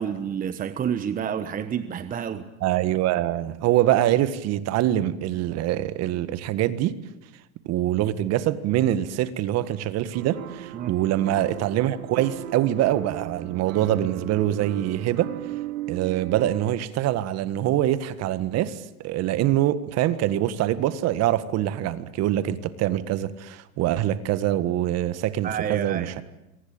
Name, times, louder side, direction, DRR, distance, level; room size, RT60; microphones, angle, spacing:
voice 1, 0.0-2.4 10.7-10.9 25.4-26.2, right 8 dB, 20° right, 1.3 m, -29 dB
voice 2, 2.6-7.0 7.7-15.3 15.9-26.2, right 13 dB, 35° right, 1.8 m, -24 dB
sound 1, 10.1-16.8, right 15 dB, 75° right, 1.4 m, -37 dB
27.0 x 24.0 x 8.9 m
supercardioid pair, 130°, 42 cm